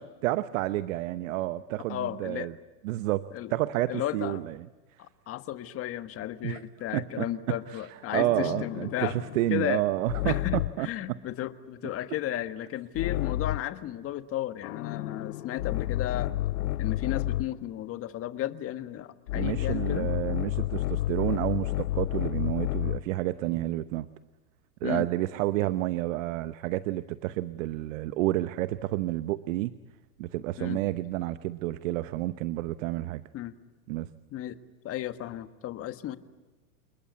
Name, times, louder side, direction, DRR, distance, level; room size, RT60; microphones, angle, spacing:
voice 1, 0.2-2.5 2.8-4.6 6.4-6.6 6.9-11.2 19.3-24.1 24.8-29.8 30.2-33.2 33.9-34.1, right 15 dB, 55° right, 13 dB, 1.0 m, -30 dB
voice 2, 1.9-2.5 3.3-3.5 3.9-4.4 5.0-9.2 9.5-9.8 10.2-16.3 16.8-20.1 24.8-25.1 30.6-30.8 33.3-33.5 34.3-34.6 34.8-36.2, left 13 dB, 30° left, 10 dB, 1.5 m, -34 dB
sound 1, 8.2-10.9 12.9-13.8 14.6-17.6 19.3-23.1, left 15 dB, 65° left, 0.8 m, -31 dB
29.0 x 21.0 x 9.5 m, 1.2 s
hypercardioid pair, 125°, 46 cm